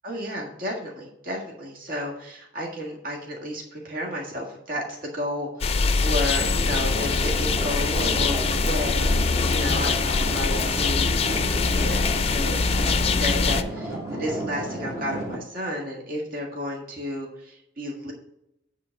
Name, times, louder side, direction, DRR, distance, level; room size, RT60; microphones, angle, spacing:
voice 1, 0.0-18.1, equal, 50° right, -1 dB, 1.7 m, -32 dB
sound 1, 5.6-13.6, left 4 dB, 30° left, 0.4 m, -23 dB
sound 2, 6.3-15.4, right 1 dB, 15° right, 1.7 m, -32 dB
9.4 x 3.9 x 5.9 m, 0.81 s
head